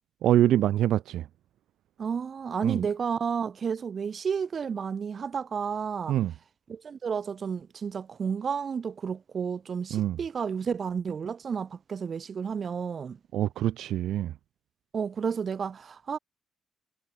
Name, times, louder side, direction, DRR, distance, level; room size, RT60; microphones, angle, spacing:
voice 1, 0.2-1.2 2.6-2.8 6.1-6.3 9.9-10.2 13.3-14.3, right 12 dB, 80° right, 2.2 m, -25 dB
voice 2, 2.0-6.2 6.7-13.2 14.9-16.2, right 6 dB, 45° right, 5.4 m, -31 dB
cardioid pair, 90°, 0 cm